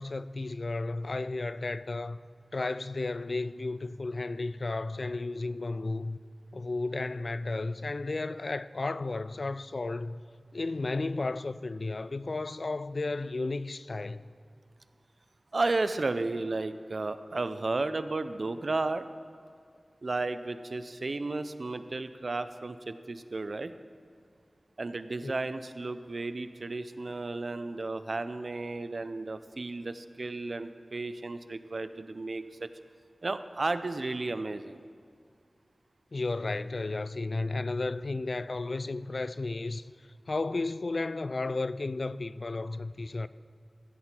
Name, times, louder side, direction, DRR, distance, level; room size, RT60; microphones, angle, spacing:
voice 1, 0.0-2.2 2.5-6.2 6.5-10.2 10.5-14.2 25.2-25.3 36.1-39.8 40.3-43.3, left 3 dB, 60° left, 0.3 m, -33 dB
voice 2, 15.5-19.1 20.0-23.7 24.8-32.7 33.2-34.8, right 3 dB, 60° right, 0.5 m, -33 dB
15.0 x 8.6 x 4.4 m
wide cardioid pair, 65°, 0 cm